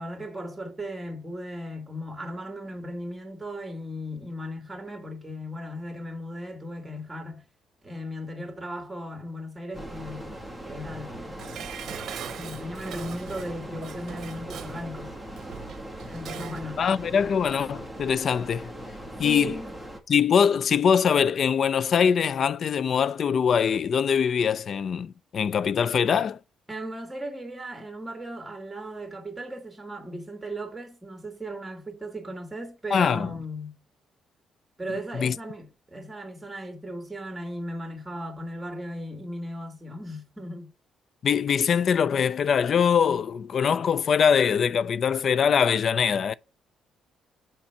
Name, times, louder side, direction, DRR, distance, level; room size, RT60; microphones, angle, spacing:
voice 1, 0.0-7.4 7.8-10.4 10.7-11.7 12.3-15.1 16.1-16.8 19.2-19.8 26.7-33.7 34.8-40.7, equal, 15° right, 2.1 m, -37 dB
sound 1, 9.7-20.0, equal, 10° left, 1.5 m, -40 dB
Dishes pots and pans, 11.4-16.7 17.0-17.1, right 9 dB, 70° right, 0.7 m, -41 dB
voice 2, 16.8-18.7 19.2-19.6 20.1-26.4 32.9-33.3 35.1-35.3 41.2-46.3, left 7 dB, 55° left, 0.3 m, -23 dB
5.8 x 4.5 x 5.8 m
cardioid pair, 90°, 0 cm